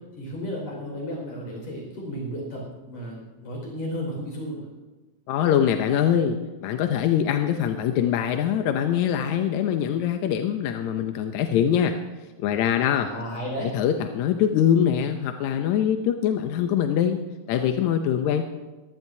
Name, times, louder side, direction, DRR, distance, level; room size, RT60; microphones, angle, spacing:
voice 1, 0.2-4.7 12.9-13.7, equal, 55° left, -1 dB, 6.2 m, -33 dB
voice 2, 5.3-12.0 12.4-13.1 13.6-17.2 17.5-18.4, left 9 dB, 75° left, 6 dB, 1.8 m, -23 dB
22.0 x 15.5 x 2.7 m, 1.2 s
omnidirectional pair, 3.7 m